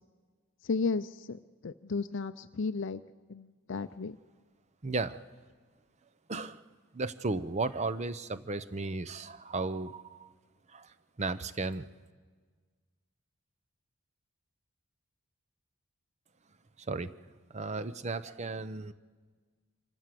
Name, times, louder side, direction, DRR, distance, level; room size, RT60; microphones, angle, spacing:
voice 1, 0.6-3.0 3.3-4.2, left 4 dB, 60° left, 11 dB, 0.5 m, -34 dB
voice 2, 4.8-5.2 6.3-6.6 6.9-10.3 10.7-11.9 16.9-17.1 17.5-18.9, right 3 dB, 30° right, 13 dB, 0.7 m, -35 dB
25.0 x 14.5 x 7.6 m, 1.5 s
head